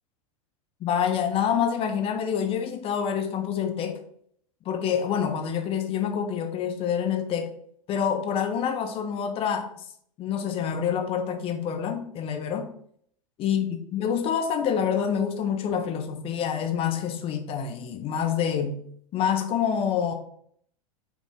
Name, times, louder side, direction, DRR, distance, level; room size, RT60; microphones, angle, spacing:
voice 1, 0.8-4.0 4.7-7.5 7.9-9.8 10.2-12.7 13.4-18.8 19.1-20.1, left 8 dB, 30° left, 6 dB, 0.6 m, -27 dB
3.4 x 2.5 x 3.3 m, 0.65 s
figure-of-eight pair, 90°, 18 cm